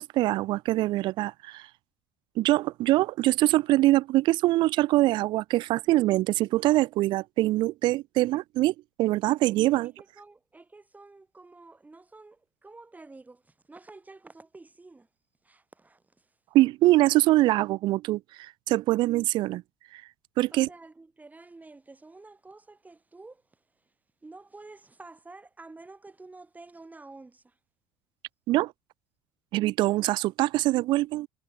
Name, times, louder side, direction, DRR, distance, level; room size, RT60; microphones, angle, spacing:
voice 1, 0.0-1.7 2.4-9.9 16.5-19.6 19.9-20.0 20.4-20.7 28.5-28.7 29.5-31.3, right 17 dB, 50° right, 0.4 m, -24 dB
voice 2, 9.8-15.1 15.4-16.3 20.5-23.6 24.2-27.6, right 3 dB, 15° right, 6.9 m, -50 dB
hypercardioid pair, 65°, 10 cm